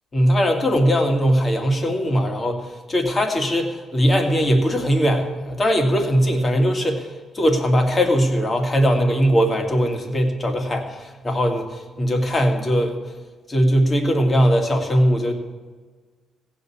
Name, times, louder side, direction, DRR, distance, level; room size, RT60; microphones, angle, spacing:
voice 1, 0.1-13.0 13.5-15.3, equal, 30° left, 4 dB, 2.1 m, -20 dB
16.0 x 5.3 x 8.5 m, 1.4 s
cardioid pair, 90°, 0 cm